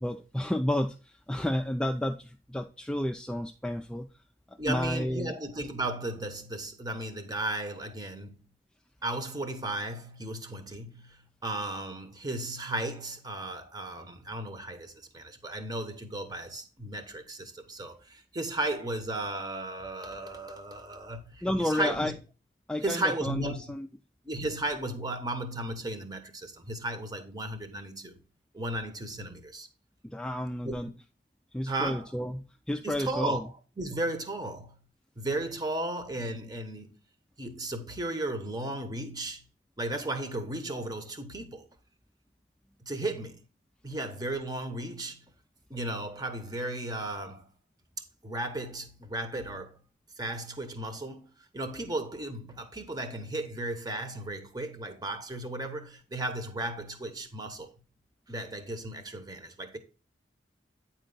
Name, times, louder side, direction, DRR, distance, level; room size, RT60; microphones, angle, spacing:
voice 1, 0.0-4.1 4.5-5.3 21.4-22.1 22.7-23.9 30.0-30.9 31.5-33.5, left 1 dB, 5° left, 0.3 m, -31 dB
voice 2, 4.6-8.5 9.0-22.2 22.8-23.7 24.2-28.2 28.5-29.7 30.6-30.9 31.7-32.1 32.8-33.4 33.8-34.8 35.2-37.0 37.4-39.4 39.8-41.7 42.8-43.4 43.8-45.2 45.7-47.5 48.2-49.8 50.2-51.3 51.5-57.7 58.3-59.8, right 2 dB, 20° right, 0.9 m, -35 dB
8.9 x 4.5 x 3.9 m
head